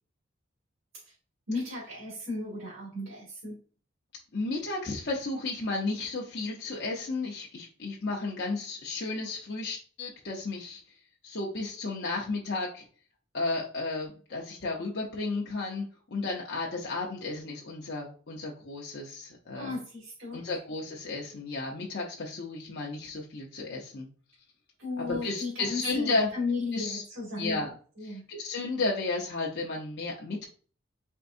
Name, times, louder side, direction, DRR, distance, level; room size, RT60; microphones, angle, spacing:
voice 1, 1.5-3.6 19.5-20.4 24.8-27.6 28.0-28.2, left 3 dB, 80° right, -8 dB, 2.1 m, -35 dB
voice 2, 4.3-10.8 11.2-12.8 13.3-19.8 20.3-24.1 25.0-26.3 26.7-27.0 27.4-27.7 28.0-30.5, left 3 dB, 55° left, -3 dB, 0.7 m, -33 dB
4.5 x 3.5 x 2.6 m, 0.40 s
head